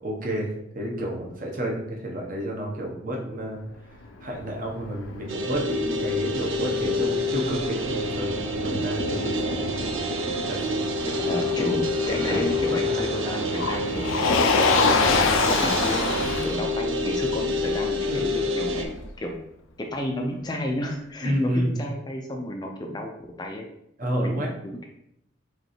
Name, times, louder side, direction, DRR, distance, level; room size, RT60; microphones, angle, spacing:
voice 1, 0.0-0.5 0.7-9.7 10.5-10.8 12.3-12.4 12.7-13.3 14.9-15.1 18.1-18.3 21.2-21.8 24.0-24.5, equal, 45° right, -1 dB, 1.0 m, -30 dB
Motor vehicle (road), 4.0-19.1, left 4 dB, 85° left, 0.5 m, -28 dB
sound 1, 5.3-18.9, left 1 dB, 85° right, 0.6 m, -28 dB
voice 2, 11.0-14.1 14.9-18.9 19.2-19.3 19.8-23.1 23.4-23.7 24.2-24.9, left 1 dB, 20° left, 2 dB, 0.4 m, -32 dB
5.1 x 3.2 x 3.1 m, 0.78 s
head